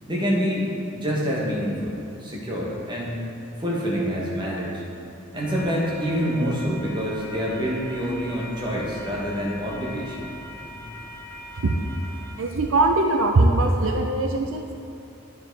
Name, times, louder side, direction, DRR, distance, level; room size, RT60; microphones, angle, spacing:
voice 1, 0.1-3.2 3.6-4.8 5.3-10.2, equal, 20° right, -4 dB, 1.3 m, -26 dB
sound 1, 5.3-12.3, equal, 15° left, 1.8 m, -40 dB
voice 2, 12.4-14.7, right 2 dB, 70° right, 2 dB, 0.5 m, -21 dB
9.6 x 4.8 x 4.6 m, 2.6 s
head